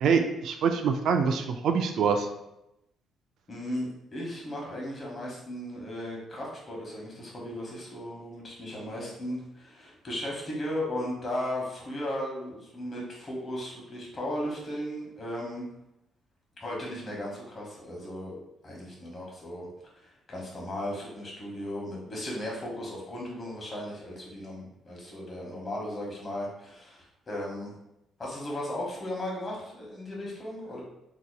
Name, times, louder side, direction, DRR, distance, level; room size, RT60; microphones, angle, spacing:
voice 1, 0.0-2.3, right 6 dB, 70° right, 5 dB, 0.3 m, -25 dB
voice 2, 3.5-15.7 16.6-19.7 19.9-27.7 28.2-30.8, left 1 dB, 30° left, -3 dB, 1.2 m, -36 dB
3.9 x 2.8 x 2.2 m, 0.85 s
cardioid pair, 115°, 0 cm